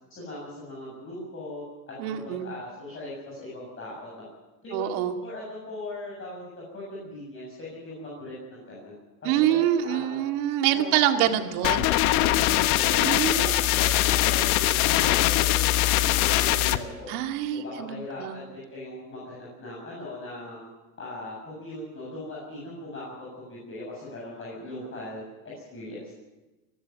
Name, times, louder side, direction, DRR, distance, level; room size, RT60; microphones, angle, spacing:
voice 1, 0.1-4.2 4.6-4.9 5.2-8.9 9.2-10.2 10.7-11.7 12.2-13.0 13.3-17.1 17.5-20.7 21.0-26.2, left 1 dB, 25° left, -5 dB, 7.8 m, -39 dB
voice 2, 2.0-2.5 4.7-5.1 9.2-11.9 13.0-13.5 17.1-18.4, right 11 dB, 65° right, 5 dB, 2.3 m, -26 dB
sound 1, 11.6-16.8, left 15 dB, 65° left, 1.3 m, -22 dB
22.0 x 13.5 x 9.2 m, 1.1 s
supercardioid pair, 125°, 47 cm